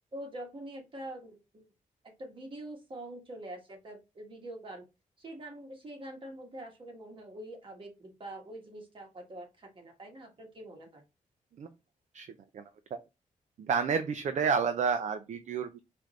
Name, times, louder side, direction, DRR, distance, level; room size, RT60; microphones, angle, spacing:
voice 1, 0.1-1.6 2.0-4.8 5.2-11.0, right 1 dB, 35° right, 1 dB, 1.4 m, -45 dB
voice 2, 13.6-15.8, right 6 dB, 60° right, 9 dB, 0.4 m, -30 dB
4.8 x 2.6 x 3.1 m, 0.26 s
wide cardioid pair, 120°, 14 cm